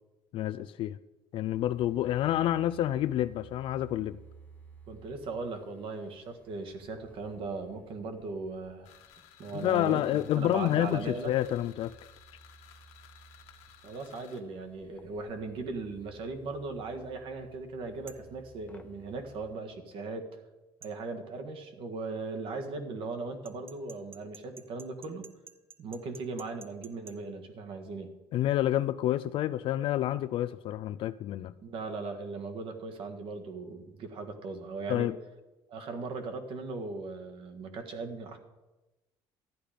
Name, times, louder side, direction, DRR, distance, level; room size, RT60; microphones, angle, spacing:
voice 1, 0.3-1.0 1.3-4.2 9.5-11.9 28.3-31.5 34.9-35.2, left 13 dB, 55° left, 0.3 m, -28 dB
sound 1, 1.5-19.6, right 4 dB, 10° left, 0.9 m, -57 dB
voice 2, 4.9-8.9 9.4-11.3 13.8-20.2 20.8-25.3 25.8-28.1 31.4-35.1 35.7-38.4, right 3 dB, 55° right, 1.7 m, -38 dB
sound 2, 8.8-14.4, left 10 dB, 85° left, 1.4 m, -56 dB
sound 3, 18.1-18.3 20.8-21.0 23.4-27.2, right 5 dB, 20° right, 0.6 m, -51 dB
13.0 x 10.0 x 5.1 m
cardioid pair, 150°, 11 cm